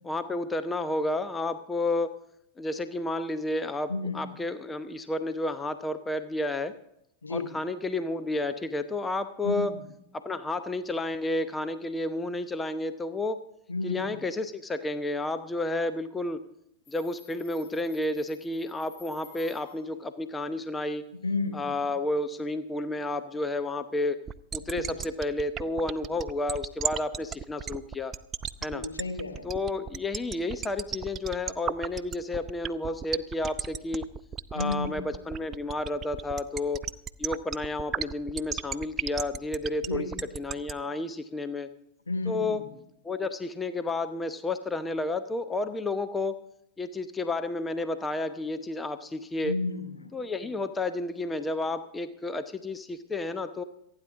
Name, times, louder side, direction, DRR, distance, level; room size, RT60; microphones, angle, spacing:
voice 1, 0.0-2.1 2.6-6.8 7.3-9.7 10.1-13.4 13.8-16.4 16.9-21.0 21.5-24.2 24.5-28.1 28.6-28.8 29.4-34.1 34.5-36.9 37.2-40.1 40.3-41.7 42.3-42.6 43.0-46.4 46.8-49.6 50.1-53.6, left 2 dB, 10° left, 10 dB, 0.8 m, -31 dB
voice 2, 3.9-4.2 7.2-7.5 9.4-9.8 13.7-14.2 21.2-21.7 24.7-25.0 28.6-29.5 34.5-34.9 39.9-40.1 42.1-42.7 49.4-50.1, left 3 dB, 75° left, 4 dB, 2.6 m, -32 dB
Subway metro underground, 16.8-20.0, left 5 dB, 45° left, 4.8 m, -55 dB
sound 1, 24.3-40.7, right 8 dB, 25° right, 0.6 m, -33 dB
27.5 x 9.8 x 3.6 m, 0.78 s
figure-of-eight pair, 90°, 0 cm